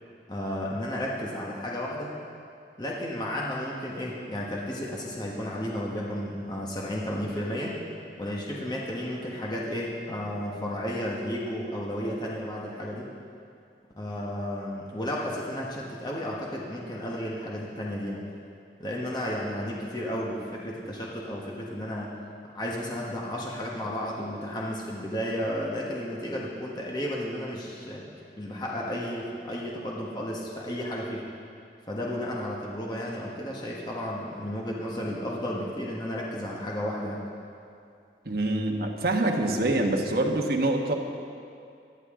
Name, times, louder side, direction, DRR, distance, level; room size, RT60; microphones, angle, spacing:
voice 1, 0.3-2.1 2.8-7.7 8.2-13.1 14.0-18.2 18.8-22.2 22.5-28.1 28.4-31.3 31.9-37.2, equal, 25° left, -4 dB, 1.3 m, -33 dB
voice 2, 38.2-40.9, right 2 dB, 60° right, 2 dB, 1.3 m, -25 dB
19.0 x 12.5 x 3.8 m, 2.5 s
head